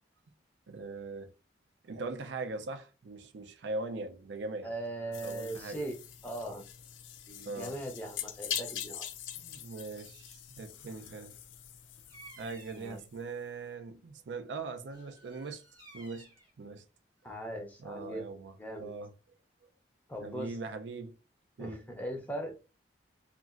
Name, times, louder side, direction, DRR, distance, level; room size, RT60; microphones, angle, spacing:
voice 1, 0.7-1.3 1.8-4.7 5.2-5.8 7.5-7.8 9.4-11.3 12.4-15.6 15.9-16.8 17.8-19.1 20.2-21.1 21.6-21.8, right 3 dB, 75° right, 0.4 m, -41 dB
voice 2, 4.6-6.0 6.2-6.6 7.3-9.1 12.7-13.0 17.2-18.3 18.6-18.9 20.1-20.5 21.6-22.5, right 1 dB, 10° left, 0.5 m, -39 dB
sound 1, 5.1-13.2, left 9 dB, 85° left, 0.4 m, -43 dB
Bird vocalization bird call bird song, 12.1-13.0 14.9-16.5, right 2 dB, 25° right, 0.8 m, -55 dB
2.9 x 2.4 x 2.4 m
head